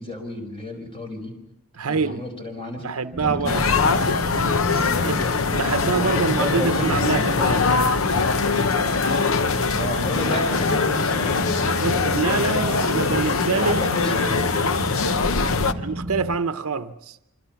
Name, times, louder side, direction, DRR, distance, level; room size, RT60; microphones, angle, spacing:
voice 1, 0.0-1.4 1.9-2.9 3.2-3.9 4.8-5.4 5.9-7.8 9.8-11.9 12.4-14.7 15.6-15.9, equal, 25° left, 4.7 m, -32 dB
voice 2, 1.8-2.2 2.8-3.6 5.0-5.1 5.5-7.6 11.8-13.8 15.8-17.2, right 4 dB, 80° right, 0.8 m, -25 dB
sound 1, 3.1-16.4, right 1 dB, 35° right, 1.3 m, -34 dB
sound 2, 3.5-15.7, left 4 dB, 70° left, 0.8 m, -22 dB
26.0 x 25.0 x 5.9 m
head